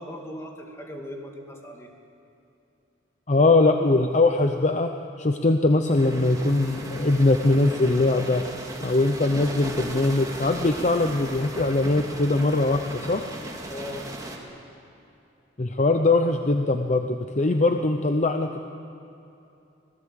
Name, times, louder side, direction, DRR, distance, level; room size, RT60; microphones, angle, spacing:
voice 1, 0.0-1.9 13.7-14.0, left 1 dB, 15° left, 1 dB, 2.2 m, -38 dB
voice 2, 3.3-4.9 5.2-8.4 8.8-13.2 15.6-18.6, left 2 dB, 40° left, 6 dB, 0.7 m, -21 dB
sound 1, 5.9-14.4, right 1 dB, 20° right, 2.2 m, -37 dB
24.5 x 17.5 x 7.7 m, 2.8 s
head